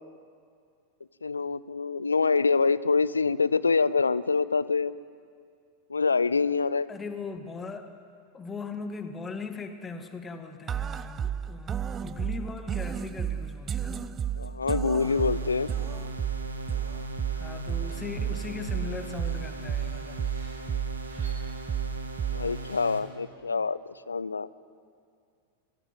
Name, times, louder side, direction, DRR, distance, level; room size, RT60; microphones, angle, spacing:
voice 1, 1.2-4.9 5.9-6.9 14.4-15.7 22.3-24.5, left 4 dB, 75° left, 18 dB, 0.6 m, -25 dB
voice 2, 6.9-7.9 8.3-14.2 17.3-20.2, left 4 dB, 15° left, 7 dB, 1.9 m, -39 dB
sound 1, 10.7-22.7, right 8 dB, 25° right, 0.6 m, -33 dB
sound 2, 15.0-23.0, right 1 dB, 80° right, 2.3 m, -39 dB
Screech, 17.8-23.1, right 2 dB, 65° right, 5.7 m, -56 dB
22.5 x 15.0 x 9.2 m, 2.3 s
figure-of-eight pair, 90°, 0 cm